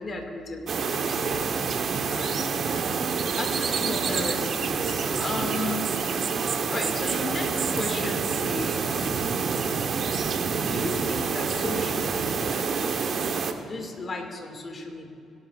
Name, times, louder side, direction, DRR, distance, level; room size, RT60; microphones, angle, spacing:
voice 1, 0.0-1.6 2.1-2.6 3.4-5.9 6.7-9.3 10.7-12.7 13.6-15.1, left 2 dB, 40° left, 3 dB, 1.9 m, -35 dB
sound 1, 0.7-13.5, right 5 dB, 55° right, 0.9 m, -27 dB
20.5 x 11.5 x 2.4 m, 2.7 s
cardioid pair, 90°, 0 cm